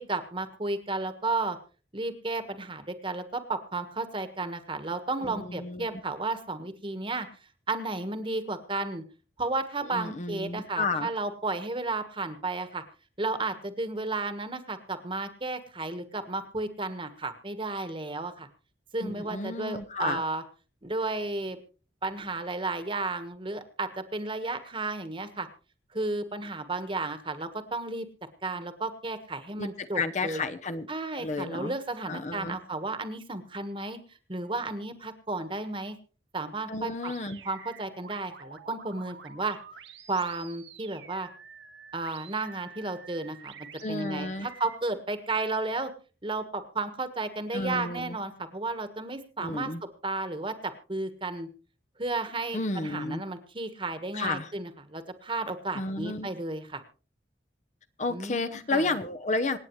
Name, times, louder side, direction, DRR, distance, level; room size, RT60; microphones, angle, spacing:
voice 1, 0.0-1.6 1.9-7.3 7.7-9.0 9.4-12.8 13.2-18.5 18.9-20.4 20.8-21.6 22.0-25.5 25.9-28.1 28.4-30.4 30.9-34.0 34.3-36.0 36.3-37.1 37.4-39.6 40.1-41.3 41.9-45.9 46.2-51.5 52.0-56.8 58.1-58.8, right 3 dB, 30° right, 9 dB, 1.4 m, -33 dB
voice 2, 5.2-6.0 9.9-11.1 19.0-20.2 29.6-30.9 31.1-31.7 32.1-32.6 36.7-37.4 43.8-44.5 47.5-48.2 49.4-49.8 52.5-53.2 54.1-54.5 55.7-56.3 58.0-59.6, left 3 dB, 40° left, 10 dB, 0.8 m, -32 dB
sound 1, 37.0-44.8, right 6 dB, 90° right, 1.6 m, -49 dB
26.5 x 9.0 x 3.2 m, 0.36 s
head